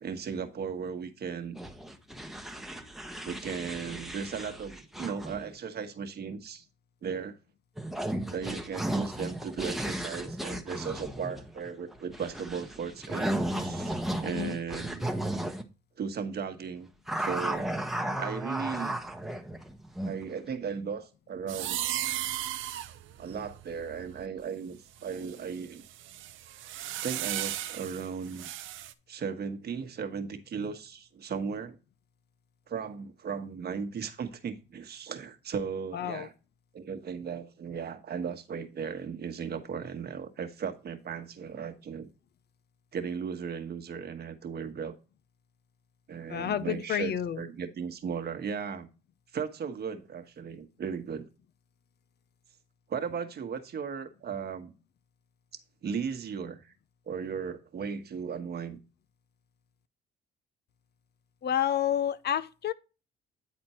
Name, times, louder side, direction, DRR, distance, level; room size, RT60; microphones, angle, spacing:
voice 1, 0.0-1.6 3.2-6.6 7.0-7.4 8.3-15.1 16.0-16.9 17.2-17.7 18.2-18.9 20.0-21.8 23.2-25.8 27.0-28.5 29.1-31.8 32.7-36.3 36.7-42.1 42.9-44.9 46.1-48.9 49.3-51.3 52.9-54.7 55.8-56.7 57.1-58.8, right 6 dB, 55° right, 1.3 m, -36 dB
sound 1, 1.6-5.5 7.8-15.6 17.1-20.2, right 1 dB, ahead, 1.0 m, -35 dB
sound 2, 21.5-24.4 25.0-28.9, right 13 dB, 80° right, 0.7 m, -36 dB
voice 2, 35.9-36.3 46.3-47.4 61.4-62.7, left 10 dB, 55° left, 0.6 m, -29 dB
9.4 x 4.3 x 4.2 m
cardioid pair, 90°, 20 cm